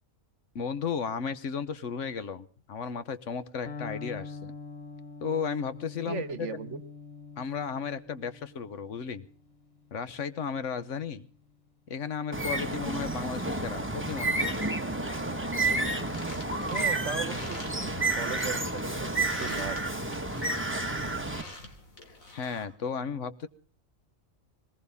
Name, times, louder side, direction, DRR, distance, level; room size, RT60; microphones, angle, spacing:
voice 1, 0.5-4.5 5.2-6.5 7.4-9.3 9.9-11.3 11.9-14.5 22.3-23.5, left 6 dB, 65° left, 13 dB, 1.3 m, -34 dB
Electric guitar, 3.7-11.5, left 4 dB, 50° left, 1.6 m, -45 dB
voice 2, 6.1-6.8 16.7-19.8, right 6 dB, 65° right, 14 dB, 1.3 m, -37 dB
Bird, 12.3-21.4, right 2 dB, 10° right, 1.2 m, -30 dB
sound 1, 15.7-22.6, left 2 dB, 85° left, 3.2 m, -48 dB
20.5 x 19.5 x 3.5 m, 0.42 s
omnidirectional pair, 1.4 m